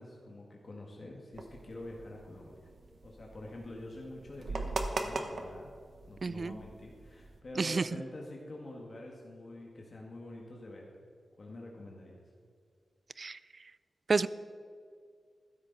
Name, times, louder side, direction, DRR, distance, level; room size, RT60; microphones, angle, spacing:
voice 1, 0.0-2.7 3.0-5.7 6.1-11.0 11.4-12.2, left 1 dB, 45° left, -2 dB, 1.7 m, -46 dB
sound 1, 1.3-7.4, right 3 dB, 60° right, 1.1 m, -41 dB
voice 2, 6.2-6.5 7.6-7.9 13.2-13.4 14.1-14.3, right 4 dB, 40° right, 16 dB, 0.3 m, -29 dB
15.0 x 12.5 x 4.0 m, 2.1 s
wide cardioid pair, 155°, 0 cm